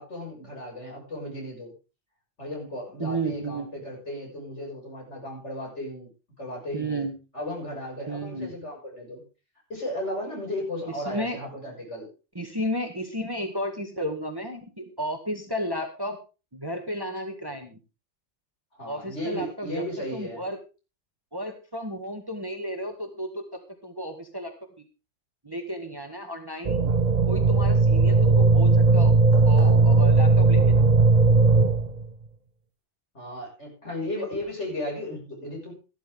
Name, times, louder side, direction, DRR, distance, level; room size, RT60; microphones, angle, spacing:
voice 1, 0.0-1.7 2.4-6.1 6.4-7.0 7.3-9.2 9.7-12.1 18.8-20.4 33.1-35.7, left 1 dB, 60° left, -1 dB, 6.7 m, -35 dB
voice 2, 3.0-3.7 6.7-7.1 8.1-8.6 10.9-11.4 12.4-16.2 16.5-17.8 18.8-19.8 20.1-20.6 21.3-23.4 23.8-24.5 25.4-26.8 27.3-29.1 29.4-30.9 34.2-34.3, equal, 20° right, 5 dB, 1.7 m, -33 dB
sound 1, 26.6-32.1, right 3 dB, 40° right, 0.9 m, -18 dB
13.5 x 12.5 x 3.7 m, 0.31 s
omnidirectional pair, 1.3 m